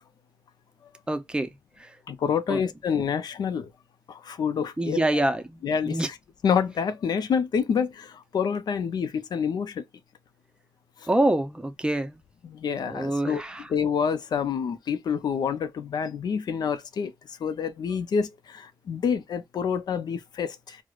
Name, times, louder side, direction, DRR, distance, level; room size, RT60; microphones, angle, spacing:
voice 1, 1.1-1.5 1.8-1.9 2.5-2.6 4.8-6.1 11.1-12.2 12.8-13.7, right 1 dB, 15° right, 0.5 m, -26 dB
voice 2, 2.1-3.7 4.1-5.2 5.6-6.0 6.4-9.8 12.4-13.4 13.7-17.1 17.4-20.8, left 6 dB, 75° left, 0.5 m, -27 dB
4.7 x 2.1 x 2.3 m
cardioid pair, 95°, 7 cm